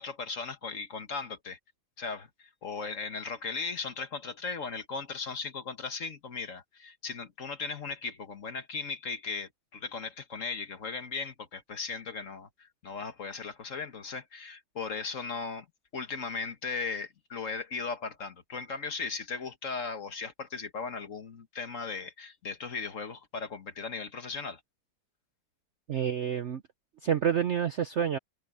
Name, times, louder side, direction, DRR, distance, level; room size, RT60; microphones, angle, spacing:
voice 1, 0.0-1.6 2.0-15.7 15.9-24.6, left 4 dB, 45° left, 1.6 m, -37 dB
voice 2, 25.9-26.6 27.0-28.2, right 8 dB, 55° right, 0.8 m, -28 dB
omnidirectional pair, 1.9 m